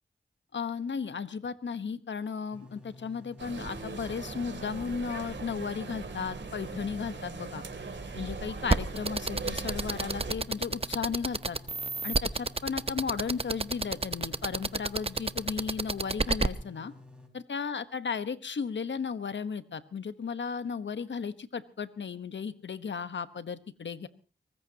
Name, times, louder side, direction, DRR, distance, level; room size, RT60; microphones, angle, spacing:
voice 1, 0.5-7.6 8.1-11.6 12.0-16.9 17.3-24.1, left 6 dB, 80° left, 12 dB, 1.2 m, -35 dB
sound 1, 2.5-17.3, left 2 dB, 5° right, 5.5 m, -51 dB
sound 2, 3.4-10.4, right 4 dB, 80° right, 3.0 m, -40 dB
sound 3, 8.7-16.5, right 3 dB, 30° right, 0.9 m, -28 dB
24.0 x 20.0 x 2.9 m, 0.36 s
cardioid pair, 55°, 19 cm